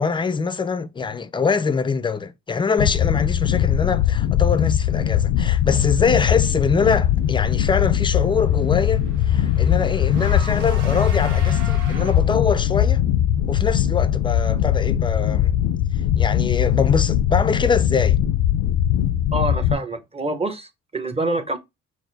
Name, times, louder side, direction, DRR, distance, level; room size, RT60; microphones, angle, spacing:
voice 1, 0.0-13.0 13.5-15.6 16.2-18.2, left 5 dB, 15° left, 0.4 m, -23 dB
sound 1, 2.8-19.8, left 10 dB, 85° left, 0.5 m, -20 dB
Car / Engine, 7.5-12.5, right 4 dB, 90° right, 1.2 m, -40 dB
voice 2, 19.3-21.6, right 2 dB, 20° right, 0.7 m, -26 dB
4.8 x 2.0 x 4.0 m
cardioid pair, 90°, 30 cm